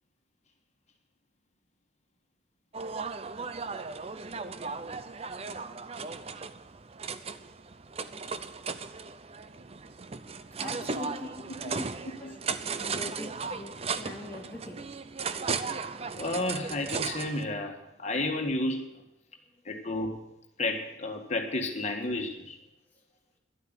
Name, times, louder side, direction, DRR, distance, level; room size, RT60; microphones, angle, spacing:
sound 1, 2.7-17.4, right 5 dB, 30° right, 0.6 m, -36 dB
voice 1, 10.6-11.9 12.2-14.9, left 2 dB, 10° left, 2.5 m, -43 dB
voice 2, 16.2-19.0 19.7-20.2 20.6-22.6, left 2 dB, 35° left, 1.9 m, -32 dB
12.0 x 8.4 x 9.9 m
head